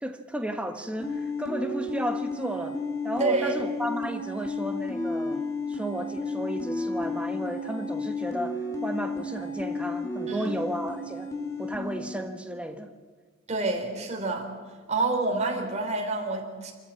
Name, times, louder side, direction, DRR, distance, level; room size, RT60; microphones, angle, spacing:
voice 1, 0.0-2.8 3.0-5.4 5.7-11.3 11.6-12.9, right 1 dB, 5° right, 6 dB, 1.3 m, -33 dB
sound 1, 1.0-12.2, left 2 dB, 15° left, 3.1 m, -32 dB
voice 2, 3.2-3.6 10.3-10.5 13.5-14.5 14.9-16.7, right 3 dB, 35° right, 1 dB, 3.4 m, -28 dB
26.0 x 14.5 x 7.3 m, 1.5 s
head